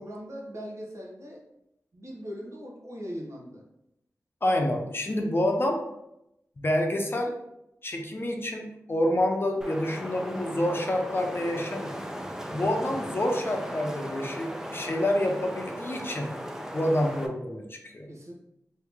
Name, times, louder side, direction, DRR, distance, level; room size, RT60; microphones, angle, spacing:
voice 1, 0.0-1.4 1.9-3.6 18.1-18.3, equal, 55° right, -3 dB, 1.0 m, -40 dB
voice 2, 4.4-5.8 6.6-7.3 7.8-12.0 12.5-16.3 16.7-18.1, left 1 dB, 40° left, 2 dB, 0.6 m, -28 dB
Wind, 9.6-17.3, equal, 10° right, 0.5 m, -37 dB
2.9 x 2.8 x 3.5 m, 0.84 s
cardioid pair, 55°, 6 cm